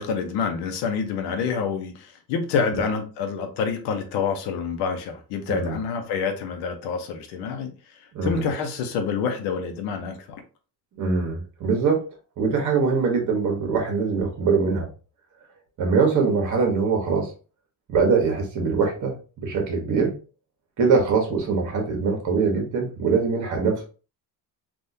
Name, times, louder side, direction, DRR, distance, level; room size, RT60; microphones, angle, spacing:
voice 1, 0.0-7.7 8.2-10.4, left 6 dB, 85° left, 0.9 m, -27 dB
voice 2, 8.1-8.5 11.0-12.0 12.4-14.9 15.8-17.3 17.9-20.1 20.8-23.8, right 5 dB, 50° right, 1.3 m, -22 dB
3.5 x 2.6 x 2.7 m
cardioid pair, 135°, 39 cm